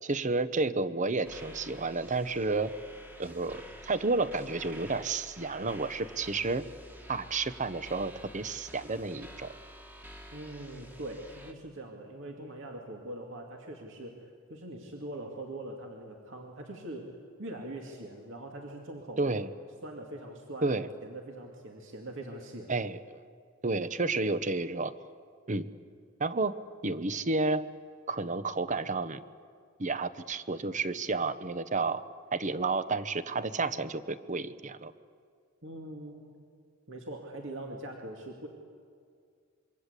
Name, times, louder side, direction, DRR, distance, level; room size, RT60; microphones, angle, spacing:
voice 1, 0.0-2.7 3.2-6.6 7.1-9.5 19.2-19.5 20.6-20.9 22.7-23.2 23.6-24.9 25.5-25.7 26.2-26.5 26.8-27.7 28.1-29.2 29.8-32.0 32.3-34.9, right 3 dB, 35° right, 13 dB, 0.9 m, -31 dB
sound 1, 1.2-11.5, equal, 10° right, 1.7 m, -49 dB
voice 2, 10.3-17.1 17.4-19.4 19.8-22.7 35.6-36.4 36.9-38.5, right 1 dB, 60° right, 1 dB, 2.6 m, -42 dB
26.5 x 23.5 x 8.3 m, 2.1 s
head